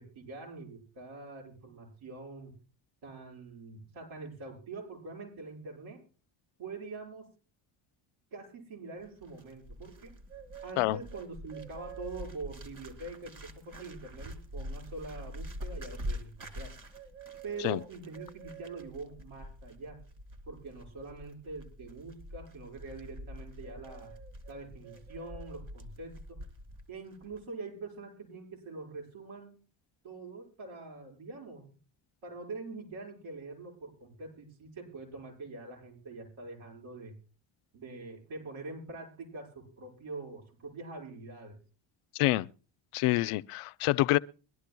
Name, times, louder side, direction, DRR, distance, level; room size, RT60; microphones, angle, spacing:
voice 1, 0.0-2.6 3.0-6.0 6.6-7.3 8.3-10.1 10.6-16.7 17.4-20.0 20.5-24.2 24.5-26.4 26.9-29.6 30.0-31.8 32.2-37.2 37.7-41.6, right 3 dB, 70° right, 6.1 m, -44 dB
Bird, 9.0-26.9 27.1-27.4, right 1 dB, 40° right, 2.7 m, -45 dB
voice 2, 42.1-42.5 42.9-44.2, left 18 dB, 85° left, 0.6 m, -27 dB
22.5 x 12.0 x 2.2 m
cardioid pair, 75°, 50 cm